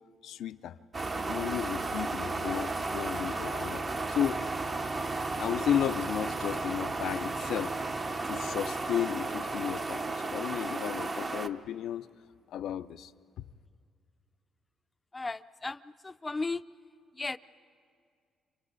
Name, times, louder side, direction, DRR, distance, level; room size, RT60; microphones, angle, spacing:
voice 1, 0.2-0.8 1.3-3.8 4.1-4.4 5.4-7.8 8.3-12.1 12.5-13.1, left 10 dB, 80° left, 11 dB, 0.5 m, -33 dB
sound 1, 0.9-11.5, right 3 dB, 35° right, 0.8 m, -34 dB
voice 2, 15.1-15.8 16.0-16.6 17.2-17.4, left 3 dB, 20° left, 12 dB, 0.5 m, -34 dB
30.0 x 27.5 x 4.0 m, 2.2 s
cardioid pair, 90°, 0 cm